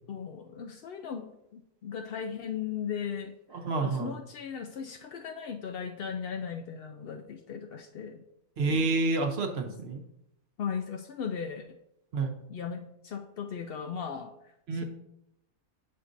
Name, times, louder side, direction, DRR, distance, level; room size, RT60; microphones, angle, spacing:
voice 1, 0.1-3.3 3.8-8.2 10.6-11.6 12.5-14.3 14.7-14.8, left 7 dB, 75° left, 4 dB, 0.5 m, -37 dB
voice 2, 3.5-4.1 8.6-10.0 12.1-12.3 14.7-14.8, right 3 dB, 50° right, 5 dB, 0.9 m, -29 dB
8.0 x 6.5 x 2.6 m, 0.82 s
omnidirectional pair, 1.5 m